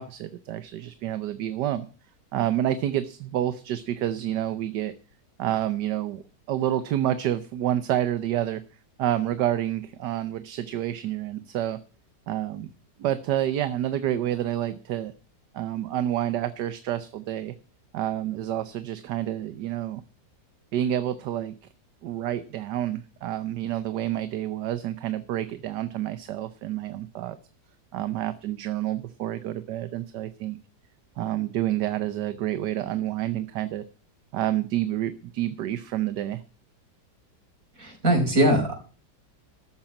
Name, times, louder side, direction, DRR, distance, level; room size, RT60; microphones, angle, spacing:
voice 1, 0.0-1.9 2.3-4.9 5.4-6.2 6.5-8.6 9.0-11.8 12.3-12.7 13.0-15.1 15.5-17.5 17.9-20.0 20.7-21.6 22.0-27.4 27.9-30.6 31.2-33.8 34.3-36.4, right 12 dB, 75° right, 12 dB, 1.4 m, -28 dB
voice 2, 37.8-38.7, right 1 dB, 50° right, 2 dB, 5.2 m, -21 dB
13.0 x 7.1 x 8.9 m, 0.38 s
omnidirectional pair, 1.9 m